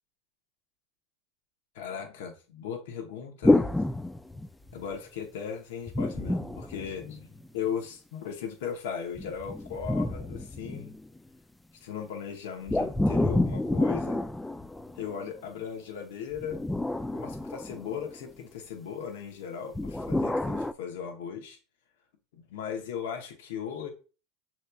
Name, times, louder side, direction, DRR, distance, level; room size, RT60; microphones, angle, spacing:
voice 1, 1.7-3.7 4.7-10.9 11.8-14.3 15.0-16.7 17.1-21.6 22.3-23.9, left 7 dB, 80° left, 0.8 m, -37 dB
sound 1, 3.4-4.9 5.9-7.5 9.2-11.2 12.7-15.2 16.3-18.2 19.7-20.7, left 2 dB, 5° left, 0.3 m, -28 dB
6.5 x 2.9 x 2.3 m
supercardioid pair, 105°, 0 cm